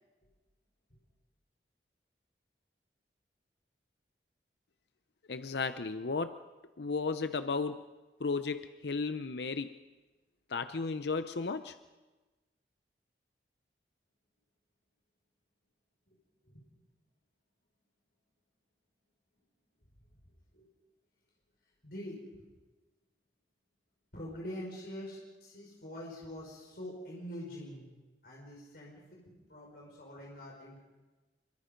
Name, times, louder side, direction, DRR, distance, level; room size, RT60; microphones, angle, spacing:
voice 1, 5.3-6.4 6.8-7.9 8.2-9.8 10.5-11.8, left 4 dB, 70° left, 11 dB, 0.7 m, -34 dB
voice 2, 21.8-22.4 24.1-27.9 28.2-30.8, equal, 55° left, -3 dB, 5.3 m, -45 dB
26.5 x 24.5 x 5.3 m, 1.2 s
head